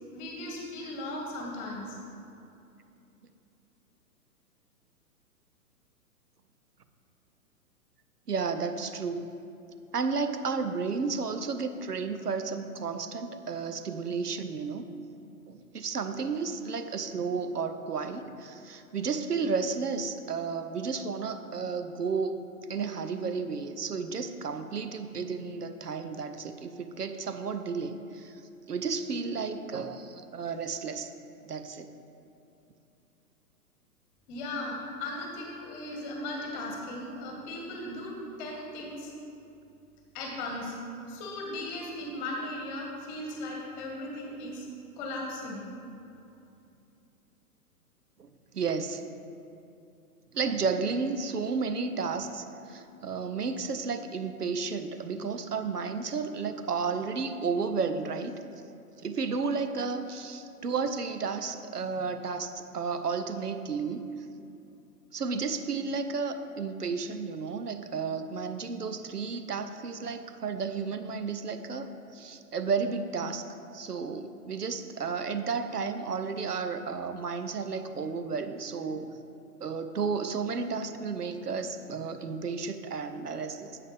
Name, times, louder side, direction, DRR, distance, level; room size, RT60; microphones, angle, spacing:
voice 1, 0.1-2.0 34.3-39.1 40.1-40.8 41.1-44.7 45.0-45.6, left 1 dB, 30° left, 0 dB, 1.4 m, -37 dB
voice 2, 8.3-9.3 9.9-14.9 15.5-22.4 22.7-28.3 28.7-31.1 31.4-31.9 48.5-49.0 50.3-58.4 59.0-64.1 65.1-73.5 73.7-79.2 79.6-83.8, right 5 dB, 80° right, 9 dB, 0.7 m, -32 dB
10.5 x 7.7 x 3.3 m, 2.7 s
figure-of-eight pair, 115°, 47 cm